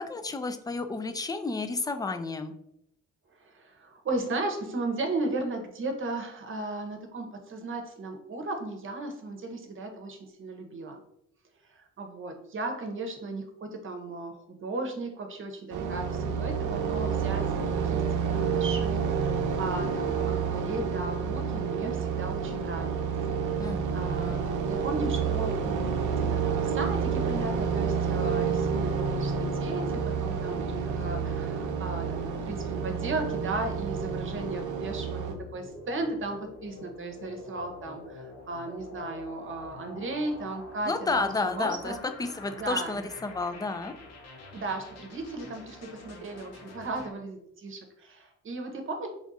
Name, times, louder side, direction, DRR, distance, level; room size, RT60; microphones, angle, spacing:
voice 1, 0.0-2.5 23.6-24.4 40.9-43.9, left 3 dB, 15° left, 8 dB, 0.3 m, -31 dB
voice 2, 3.4-11.0 11.7-23.1 23.4-35.2 35.5-42.0 42.5-43.0 44.5-49.1, right 2 dB, 40° right, 5 dB, 0.9 m, -36 dB
sound 1, 15.7-35.3, right 6 dB, 80° right, 0.7 m, -29 dB
sound 2, 28.8-47.1, left 3 dB, 60° left, 0.9 m, -47 dB
3.5 x 2.4 x 4.0 m, 0.77 s
cardioid pair, 90°, 30 cm